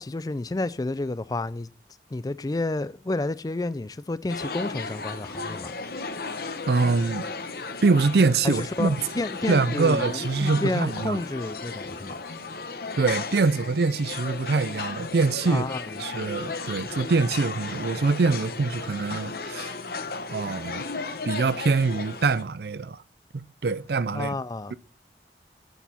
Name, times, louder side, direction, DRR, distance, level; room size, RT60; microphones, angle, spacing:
voice 1, 0.0-1.7 2.1-5.7 8.4-12.1 15.5-15.9 24.1-24.7, left 2 dB, 20° left, 0.4 m, -30 dB
sound 1, 4.3-22.4, left 4 dB, 55° left, 0.9 m, -35 dB
voice 2, 6.7-7.3 7.8-9.0 9.5-11.2 13.0-15.7 16.0-19.7 20.3-20.8 21.3-23.0 23.3-24.3, right 4 dB, 65° right, 0.5 m, -24 dB
8.2 x 8.2 x 4.3 m
head